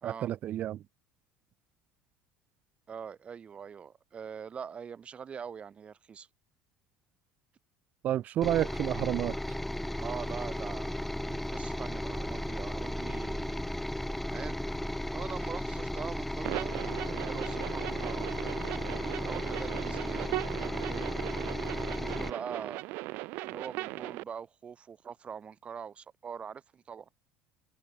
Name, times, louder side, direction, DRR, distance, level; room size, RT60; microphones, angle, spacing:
voice 1, 0.0-0.8 8.0-9.4, right 12 dB, 55° right, 0.7 m, -30 dB
voice 2, 2.9-6.3 10.0-13.6 14.3-14.6 15.1-18.5 19.2-20.4 20.9-21.1 21.9-22.8 23.4-27.1, right 7 dB, 35° right, 2.1 m, -43 dB
sound 1, 8.4-22.3, left 1 dB, 5° left, 2.3 m, -35 dB
sound 2, 12.1-17.9, right 2 dB, 15° right, 3.5 m, -48 dB
sound 3, 16.4-24.2, right 22 dB, 70° right, 1.8 m, -38 dB
hypercardioid pair, 75°, 3 cm